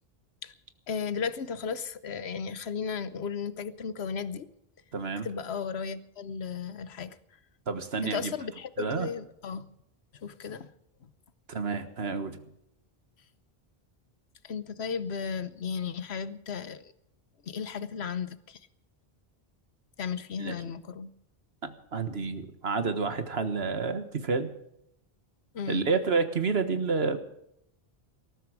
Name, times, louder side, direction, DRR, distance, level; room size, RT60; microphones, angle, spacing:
voice 1, 0.9-4.5 5.2-7.2 8.0-9.7 10.1-10.7 14.4-16.9 17.4-18.6 20.0-21.1 25.5-25.8, left 6 dB, 90° left, 14 dB, 1.2 m, -35 dB
voice 2, 4.9-5.3 7.7-8.3 8.8-9.1 11.5-12.4 20.4-20.5 21.6-24.5 25.7-27.2, right 4 dB, 80° right, 10 dB, 1.7 m, -29 dB
19.5 x 13.5 x 5.0 m, 0.79 s
omnidirectional pair, 1.0 m